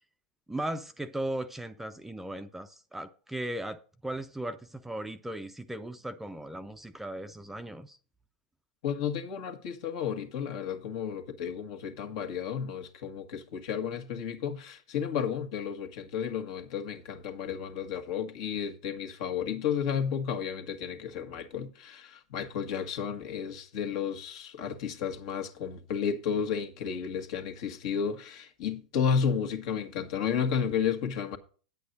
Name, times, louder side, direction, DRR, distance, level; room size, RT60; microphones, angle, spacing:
voice 1, 0.5-8.0, right 1 dB, 5° right, 0.6 m, -37 dB
voice 2, 8.8-31.4, left 7 dB, 55° left, 1.6 m, -32 dB
9.6 x 8.4 x 4.1 m
hypercardioid pair, 100°, 4 cm